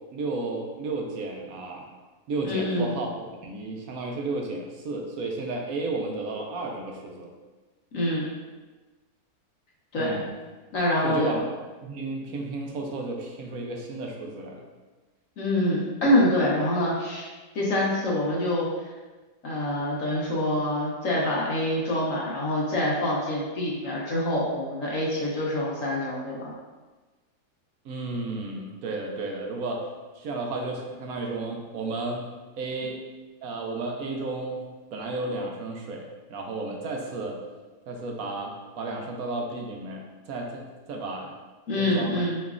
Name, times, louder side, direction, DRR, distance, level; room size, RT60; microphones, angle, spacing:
voice 1, 0.1-1.9 2.3-3.1 3.4-7.3 10.0-10.3 11.0-11.5 11.8-14.6 27.8-29.9 30.1-32.3 32.6-33.0 33.4-34.7 34.9-37.4 37.9-41.3 41.7-42.2, right 3 dB, 70° right, 1 dB, 1.0 m, -33 dB
voice 2, 2.4-2.9 7.9-8.3 9.9-10.2 10.7-11.4 15.4-18.7 19.4-26.5 41.7-42.4, left 1 dB, 60° left, -5 dB, 1.2 m, -26 dB
5.1 x 3.1 x 2.4 m, 1.2 s
omnidirectional pair, 1.7 m